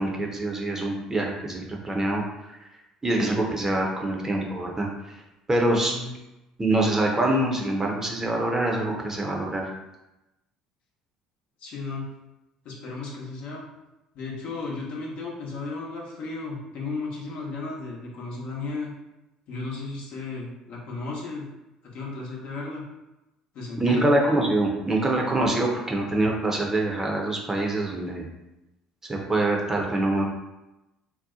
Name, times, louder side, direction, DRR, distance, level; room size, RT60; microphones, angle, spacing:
voice 1, 0.0-2.5 3.0-4.9 5.5-5.9 6.6-9.6 23.7-28.3 29.1-30.2, right 2 dB, 20° right, 0 dB, 0.7 m, -25 dB
voice 2, 5.6-6.1 11.6-12.1 12.6-13.6 14.1-19.0 19.5-21.5 21.8-22.8 23.5-24.1, left 3 dB, 60° left, -2 dB, 0.9 m, -34 dB
2.8 x 2.1 x 3.7 m, 0.96 s
hypercardioid pair, 65°, 2 cm